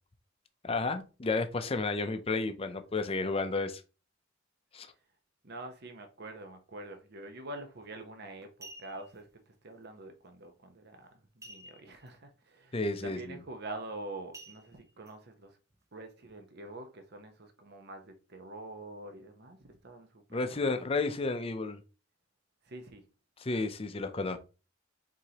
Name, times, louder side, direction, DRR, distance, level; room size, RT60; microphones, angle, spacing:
voice 1, 0.6-3.8 4.7-4.9 12.7-13.4 20.3-21.8 23.4-24.4, left 3 dB, 30° left, 0.5 m, -32 dB
voice 2, 5.4-15.6 15.9-20.7 22.6-23.0, right 2 dB, 55° right, 0.9 m, -46 dB
sound 1, 7.7-8.0 8.4-9.2 11.4-12.1 12.4-12.5 13.0-13.2 14.3-15.1 15.7-15.8, right 1 dB, 15° right, 0.6 m, -51 dB
4.7 x 3.9 x 2.9 m
head